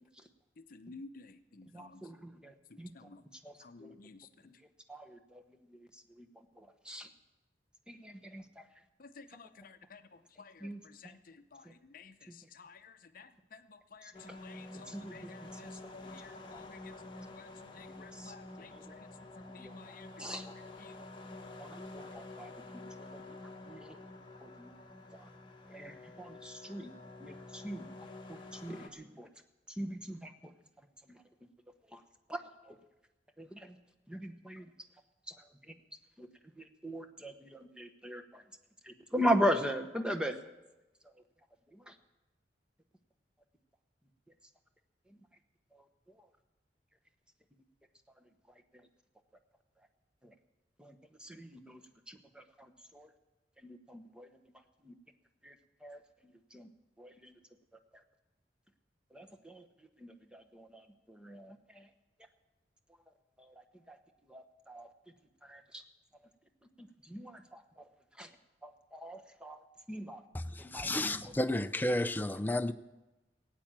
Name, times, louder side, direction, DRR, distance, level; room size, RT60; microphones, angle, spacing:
voice 1, 0.6-2.0 2.7-3.2 3.6-4.6 9.0-21.0, left 4 dB, 50° left, 0.7 m, -55 dB
voice 2, 1.7-2.5 2.8-2.9 3.4-3.5 3.8-3.9 4.9-5.2 6.9-7.1 7.9-8.4 10.6-10.8 14.9-15.3 18.2-18.3 19.6-19.7 20.2-20.5 21.6-21.7 21.9-22.5 23.1-23.2 23.7-24.0 24.4-24.7 25.7-26.9 27.2-27.8 28.6-29.3 29.8-30.3 32.3-32.4 33.4-33.7 34.1-34.7 36.2-36.3 36.8-38.2 38.9-40.4 50.8-50.9 51.2-51.8 52.1-52.4 52.9-53.1 53.9-54.3 54.9-55.0 55.5-55.6 55.8-56.0 56.5-56.7 57.0-57.1 59.1-59.6 60.0-60.7 61.1-61.6 63.9-64.0 64.3-64.9 65.5-65.6 66.8-67.6 68.2-68.3 68.6-69.6 69.9-70.2 70.7-71.2, equal, 5° right, 0.9 m, -38 dB
Resonant bass flute and Viole Air Aayer, 14.1-28.9, left 2 dB, 25° left, 1.2 m, -49 dB
voice 3, 70.3-72.7, left 1 dB, 10° left, 0.4 m, -32 dB
17.5 x 9.0 x 7.4 m
head